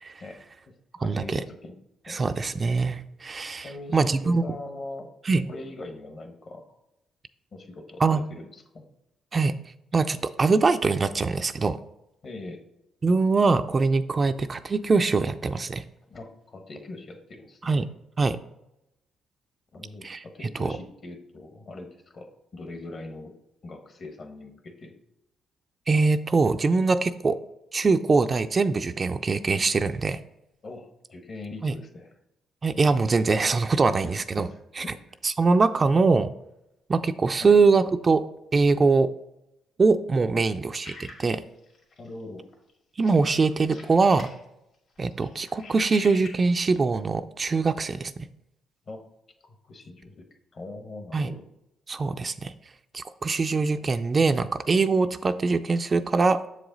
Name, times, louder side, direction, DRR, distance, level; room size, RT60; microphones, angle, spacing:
voice 1, 0.2-1.7 2.1-2.3 3.6-5.1 5.4-6.8 7.5-8.9 12.2-12.6 16.1-17.9 19.7-23.3 23.6-24.9 30.6-32.1 34.0-35.2 37.4-37.6 40.3-40.6 42.0-42.5 48.8-49.1 49.4-50.3 50.5-51.5, left 2 dB, 45° left, 6 dB, 1.1 m, -41 dB
voice 2, 1.0-1.4 2.1-3.7 3.9-4.6 5.3-5.4 8.0-8.2 9.3-9.5 9.9-11.8 13.0-15.8 17.6-17.9 18.2-18.4 20.0-20.2 20.6-20.7 25.9-27.4 27.7-30.2 31.6-31.7 32.6-34.5 34.8-34.9 35.2-36.3 36.9-38.2 38.5-39.1 39.8-41.4 43.0-44.3 45.0-48.1 51.1-51.3 51.9-52.5 52.9-56.4, right 4 dB, 35° right, 9 dB, 0.3 m, -23 dB
sound 1, 40.8-42.2 42.5-42.7 43.0-44.4 44.7-46.7, left 3 dB, 65° left, 2.0 m, -45 dB
7.0 x 4.8 x 3.9 m, 0.86 s
cardioid pair, 90°, 0 cm